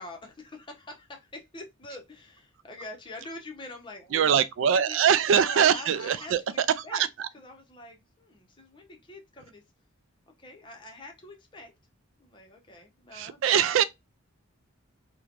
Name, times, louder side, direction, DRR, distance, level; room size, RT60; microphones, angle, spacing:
voice 1, 0.0-5.0 5.3-7.1 7.3-9.6 10.4-11.7 12.2-13.7, left 2 dB, 25° left, 0.7 m, -45 dB
voice 2, 4.1-7.3 13.1-13.8, right 8 dB, 65° right, 0.3 m, -23 dB
3.1 x 2.2 x 2.4 m
head